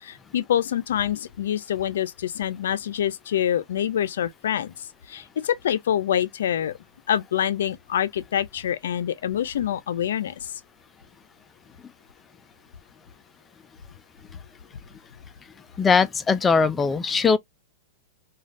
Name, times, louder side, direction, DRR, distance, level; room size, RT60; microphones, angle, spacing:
voice 1, 0.0-6.8 7.1-10.5, left 10 dB, 80° left, 0.5 m, -26 dB
voice 2, 15.8-17.4, left 5 dB, 15° left, 0.4 m, -20 dB
3.3 x 2.3 x 2.5 m
supercardioid pair, 140°, 0 cm